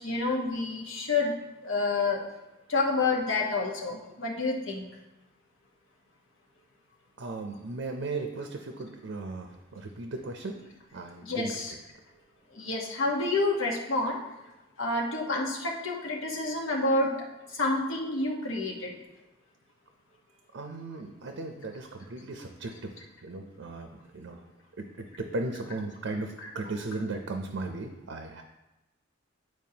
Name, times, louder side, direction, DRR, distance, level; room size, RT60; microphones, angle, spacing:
voice 1, 0.0-1.3 1.6-2.2 2.7-4.8 11.2-11.7 12.5-14.2 14.8-17.1 17.5-19.0 26.4-26.5, left 3 dB, 85° left, -1 dB, 1.2 m, -28 dB
voice 2, 7.2-10.5 10.9-11.5 20.5-22.9 23.2-23.9 24.1-24.4 24.8-28.4, right 3 dB, 70° right, 4 dB, 0.6 m, -36 dB
9.2 x 4.6 x 2.8 m, 1.0 s
head